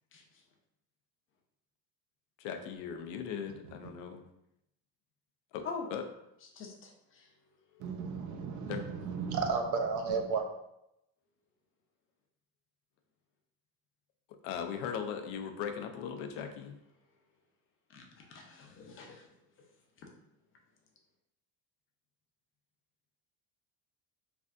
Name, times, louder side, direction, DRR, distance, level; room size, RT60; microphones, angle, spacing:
voice 1, 0.1-0.4 5.6-5.9 6.5-7.3 7.7-7.8 16.4-16.5 17.9-19.3 20.0-20.1, left 5 dB, 30° left, 1 dB, 0.5 m, -45 dB
voice 2, 2.4-4.2 5.5-5.7 5.9-6.0 8.7-8.8 14.4-16.7, left 7 dB, 80° left, 6 dB, 0.5 m, -38 dB
voice 3, 7.8-10.4, right 5 dB, 45° right, 4 dB, 0.4 m, -34 dB
3.4 x 2.5 x 2.4 m, 0.83 s
cardioid pair, 140°, 41 cm